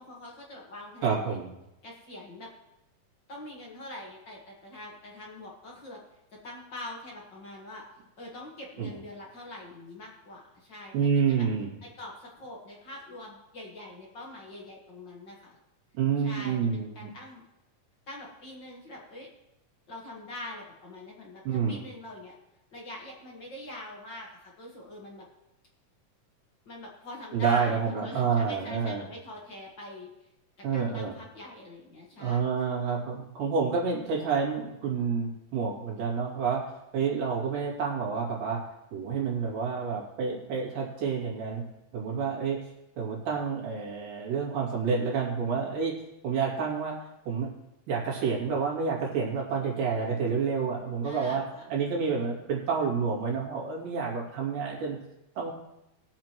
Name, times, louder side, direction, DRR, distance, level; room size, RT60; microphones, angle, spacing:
voice 1, 0.0-1.4 1.8-2.5 3.3-6.0 6.3-7.8 8.2-11.5 11.8-15.6 16.2-17.4 18.1-19.3 19.9-22.4 22.7-25.3 26.7-30.3 30.6-32.6 51.0-51.7, left 1 dB, 45° left, -2 dB, 1.9 m, -44 dB
voice 2, 1.0-1.5 8.8-9.0 10.9-11.7 15.9-17.1 21.5-21.8 27.3-29.1 30.6-31.1 32.2-36.6 36.9-41.6 41.9-42.7 43.0-46.0 46.2-47.0 47.3-47.5 47.9-51.4 51.7-55.0 55.4-55.5, right 6 dB, 80° right, -3 dB, 4.1 m, -29 dB
21.0 x 7.6 x 3.1 m, 0.91 s
omnidirectional pair, 3.7 m